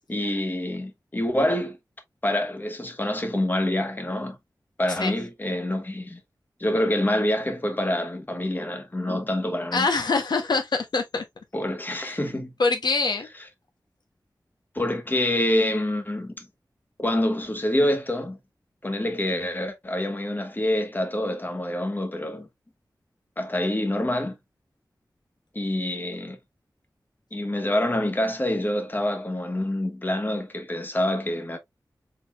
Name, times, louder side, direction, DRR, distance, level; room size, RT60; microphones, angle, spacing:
voice 1, 0.1-1.8 2.2-4.4 4.8-6.2 6.6-9.9 11.5-12.5 14.7-16.5 17.0-18.4 18.8-22.5 23.4-24.4 25.5-26.4 27.3-31.6, left 1 dB, 25° left, 1.1 m, -26 dB
voice 2, 9.7-11.2 11.9-12.2 12.6-13.3, left 3 dB, 75° left, 0.7 m, -24 dB
4.3 x 4.0 x 2.2 m
wide cardioid pair, 80°, 7 cm